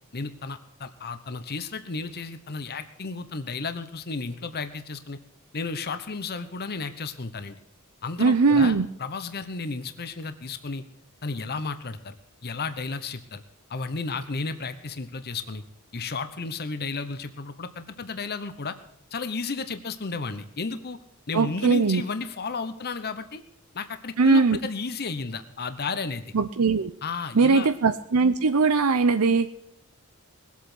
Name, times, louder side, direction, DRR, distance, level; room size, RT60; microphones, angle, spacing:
voice 1, 0.1-5.2 5.5-7.6 8.0-10.8 11.2-12.2 12.4-13.4 13.7-15.6 15.9-18.8 19.1-21.0 21.3-23.4 23.7-26.2 27.0-27.7, left 4 dB, 50° left, 10 dB, 0.9 m, -33 dB
voice 2, 8.2-8.9 21.3-22.0 24.2-24.6 26.3-26.9 27.3-29.5, right 4 dB, 80° right, 9 dB, 0.7 m, -20 dB
20.5 x 8.4 x 6.1 m, 0.72 s
head